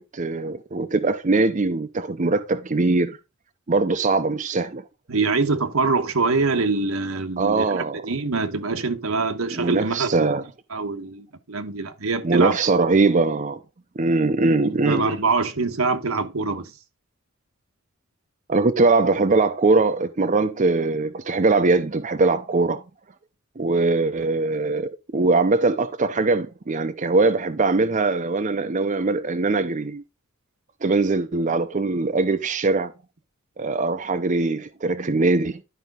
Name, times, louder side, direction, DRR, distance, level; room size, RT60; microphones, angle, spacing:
voice 1, 0.0-3.2 3.7-4.8 7.4-8.0 9.5-10.4 12.2-13.6 14.0-15.1 18.5-22.8 23.6-30.0 30.8-32.9 33.6-35.6, right 3 dB, 35° right, 0.6 m, -21 dB
voice 2, 5.1-10.4 10.7-12.5 14.6-16.7, right 3 dB, 85° right, 1.2 m, -24 dB
11.0 x 5.1 x 3.8 m
head